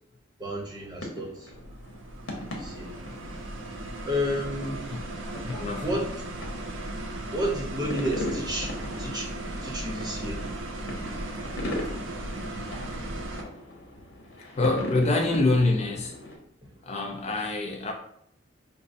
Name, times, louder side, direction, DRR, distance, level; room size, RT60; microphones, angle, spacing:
voice 1, 0.4-1.5 2.3-2.9 4.1-4.9 5.8-6.1 7.3-9.3 9.6-10.4, equal, 20° right, -2 dB, 0.8 m, -31 dB
sound 1, 0.7-16.4, left 1 dB, 90° left, 0.8 m, -40 dB
sound 2, 1.5-13.4, right 1 dB, 80° right, 0.5 m, -36 dB
voice 2, 5.4-5.8 14.6-16.1 16.9-17.9, left 2 dB, 35° left, 1 dB, 0.4 m, -25 dB
5.1 x 2.0 x 2.5 m, 0.69 s
head